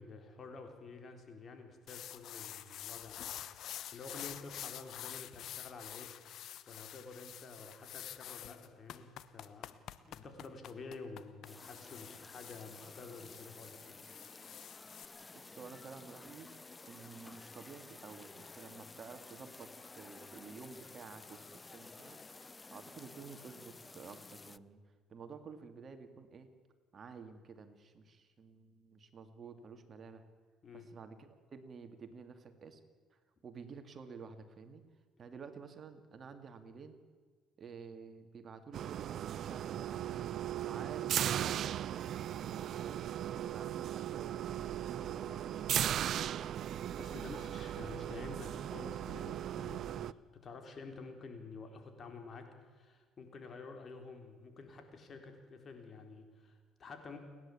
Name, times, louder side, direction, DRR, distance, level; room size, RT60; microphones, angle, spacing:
voice 1, 0.0-6.1 6.7-9.7 10.0-14.0 14.5-14.6 30.6-30.9 40.7-40.9 47.0-57.2, left 4 dB, 45° left, 5 dB, 4.1 m, -50 dB
sound 1, 1.9-15.0, left 11 dB, 65° left, 1.0 m, -48 dB
sound 2, 11.4-24.6, left 3 dB, 25° left, 0.6 m, -53 dB
voice 2, 15.3-16.5 16.9-24.8 25.1-26.5 26.9-30.3 30.7-32.8 33.1-34.8 35.2-37.0 37.6-40.3 40.6-43.0 43.3-46.4, right 5 dB, 45° right, 8 dB, 2.4 m, -51 dB
sound 3, 38.7-50.1, right 11 dB, 60° right, 0.5 m, -37 dB
29.5 x 11.0 x 8.6 m, 1.5 s
supercardioid pair, 80°, 0 cm